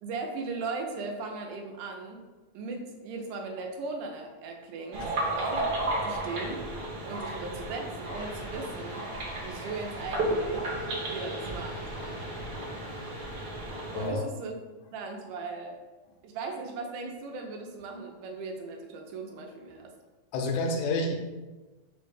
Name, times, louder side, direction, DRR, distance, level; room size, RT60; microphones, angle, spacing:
voice 1, 0.0-2.2 2.5-5.1 5.4-6.7 7.1-9.1 9.4-10.7 11.0-11.9 13.9-14.5 14.9-15.8 16.2-19.9, right 3 dB, 85° right, 2 dB, 2.2 m, -37 dB
sound 1, 4.9-14.1, right 1 dB, 70° right, 1.3 m, -34 dB
sound 2, 8.1-14.0, equal, 50° left, 0.8 m, -47 dB
voice 2, 13.9-14.3 20.3-21.2, left 2 dB, 75° left, 2 dB, 1.6 m, -29 dB
5.0 x 2.1 x 4.8 m, 1.2 s
omnidirectional pair, 3.6 m